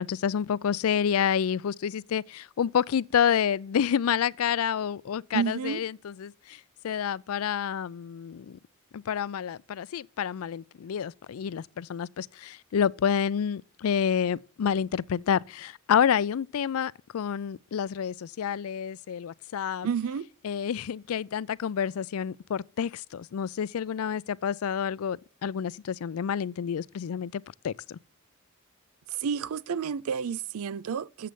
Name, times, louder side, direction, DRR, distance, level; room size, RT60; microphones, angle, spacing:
voice 1, 0.0-8.6 8.9-19.9 20.4-28.0, left 8 dB, 80° left, 0.4 m, -29 dB
voice 2, 5.3-5.8 19.8-20.3 29.1-31.3, right 7 dB, 85° right, 0.4 m, -30 dB
7.7 x 7.5 x 6.8 m
head